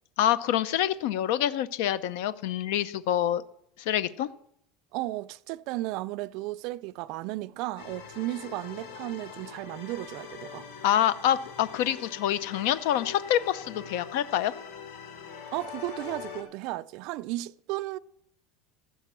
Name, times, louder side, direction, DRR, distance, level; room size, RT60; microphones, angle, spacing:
voice 1, 0.2-3.4 3.8-4.3 10.8-14.5, left 11 dB, 65° left, 0.6 m, -26 dB
voice 2, 4.9-10.7 15.5-18.0, right 17 dB, 50° right, 0.4 m, -34 dB
sound 1, 7.8-16.4, left 7 dB, 80° left, 6.0 m, -43 dB
15.0 x 5.9 x 7.3 m
cardioid pair, 175°, 0 cm